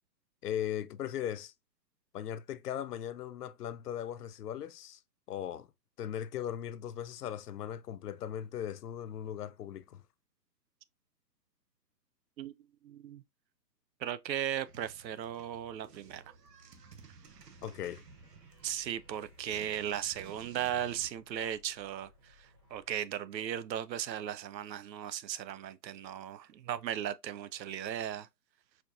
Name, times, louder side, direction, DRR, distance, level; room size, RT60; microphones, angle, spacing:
voice 1, 0.4-1.5 2.1-5.0 5.3-5.7 6.0-10.0 17.6-18.0, left 10 dB, 65° left, 0.5 m, -38 dB
voice 2, 12.8-13.2 14.0-16.3 18.6-28.3, right 10 dB, 85° right, 0.6 m, -37 dB
sound 1, 14.6-21.1, right 5 dB, 70° right, 1.0 m, -55 dB
sound 2, 17.3-22.9, left 2 dB, 15° right, 0.6 m, -64 dB
4.3 x 2.7 x 2.4 m
hypercardioid pair, 155°, 50 cm